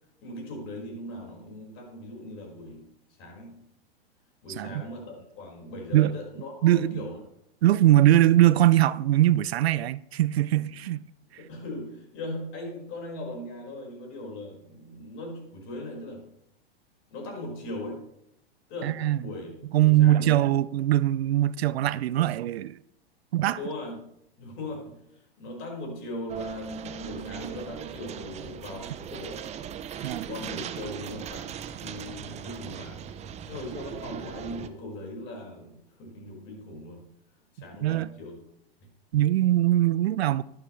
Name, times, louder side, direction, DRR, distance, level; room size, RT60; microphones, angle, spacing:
voice 1, 0.2-2.9 3.2-3.6 4.4-7.2 10.5-10.9 11.3-16.3 17.1-18.0 18.7-19.5 19.8-20.5 23.5-24.0 24.4-25.0 25.4-29.4 30.3-31.5 31.8-33.0 33.5-37.0 37.5-38.4, left 1 dB, 40° left, 5.0 m, -39 dB
voice 2, 6.6-7.0 7.6-11.0 18.8-19.2 19.7-22.8 23.3-23.6 30.0-30.3 37.8-38.1 39.1-40.4, right 13 dB, 75° right, 0.5 m, -21 dB
sound 1, 26.3-34.7, right 8 dB, 20° right, 0.7 m, -38 dB
12.0 x 11.5 x 3.2 m
hypercardioid pair, 115°, 31 cm